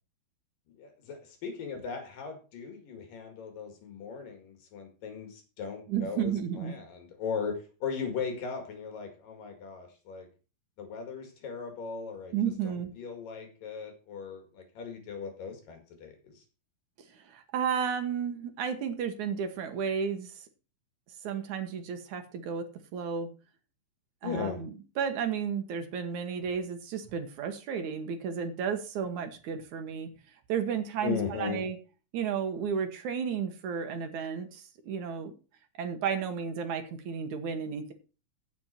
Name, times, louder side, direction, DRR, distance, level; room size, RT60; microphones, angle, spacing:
voice 1, 0.8-10.3 10.8-12.3 12.6-16.3 24.2-24.6 31.0-31.6, left 6 dB, 65° left, 5 dB, 3.6 m, -38 dB
voice 2, 5.9-6.7 12.3-12.9 17.1-20.4 21.2-22.6 22.9-23.3 24.2-30.1 30.5-31.8 32.1-35.3 35.8-37.9, right 7 dB, 65° right, 7 dB, 2.3 m, -33 dB
15.5 x 6.2 x 4.3 m, 0.34 s
omnidirectional pair, 4.3 m